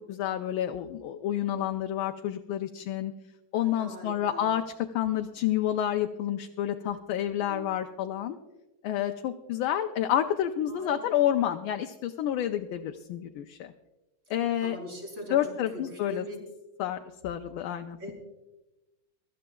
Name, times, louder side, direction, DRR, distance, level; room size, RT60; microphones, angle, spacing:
voice 1, 0.1-3.1 3.5-4.6 4.9-8.4 8.8-13.7 14.3-14.8 15.3-16.2 16.8-18.1, left 11 dB, 85° left, 6 dB, 1.4 m, -29 dB
voice 2, 3.5-4.5 7.4-7.7 10.7-11.3 14.6-16.4 18.0-18.1, equal, 35° right, -1 dB, 4.4 m, -42 dB
23.0 x 13.5 x 2.3 m, 1.0 s
omnidirectional pair, 2.2 m